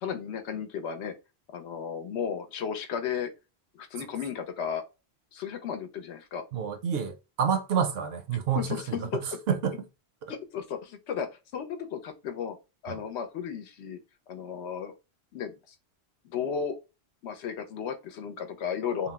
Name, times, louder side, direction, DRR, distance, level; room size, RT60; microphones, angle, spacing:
voice 1, 0.0-1.1 1.5-3.3 3.7-4.8 5.3-6.4 8.6-9.2 10.3-11.3 11.5-12.6 12.8-14.0 14.3-14.9 15.3-15.8 16.2-16.7 17.2-19.1, left 7 dB, 90° left, 0.9 m, -34 dB
voice 2, 6.5-9.8 10.2-10.3 12.9-13.0 19.0-19.1, right 7 dB, 70° right, 0.7 m, -29 dB
2.9 x 2.0 x 3.3 m
omnidirectional pair, 1.1 m